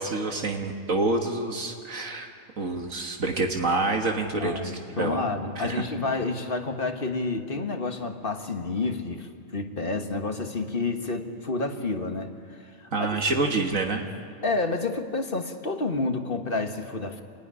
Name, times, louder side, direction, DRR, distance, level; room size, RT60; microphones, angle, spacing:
voice 1, 0.0-2.3 2.6-4.5 5.0-5.2 5.6-5.8 12.9-14.0, right 3 dB, 70° right, 2 dB, 1.9 m, -27 dB
voice 2, 4.4-13.1 14.4-17.2, left 3 dB, 40° left, 5 dB, 1.7 m, -29 dB
28.5 x 16.5 x 9.9 m, 2.2 s
omnidirectional pair, 1.4 m